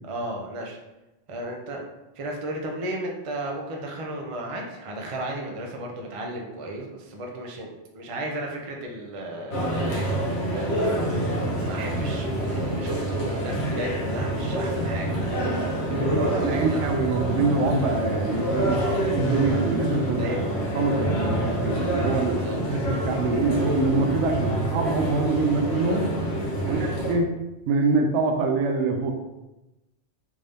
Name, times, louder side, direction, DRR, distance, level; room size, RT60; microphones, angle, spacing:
voice 1, 0.0-0.8 1.3-1.8 2.1-10.7 11.6-15.1 16.0-16.9 18.7-19.0 20.2-21.1 22.2-22.6 26.6-26.8, right 1 dB, 40° right, 0 dB, 0.5 m, -34 dB
sound 1, 9.5-27.1, right 1 dB, 65° left, 1.0 m, -27 dB
voice 2, 16.4-18.8 19.1-20.3 20.7-22.3 22.7-26.1 26.7-27.3 27.7-29.1, right 3 dB, 85° right, 3 dB, 0.9 m, -24 dB
3.5 x 2.6 x 3.4 m, 0.99 s
omnidirectional pair, 1.2 m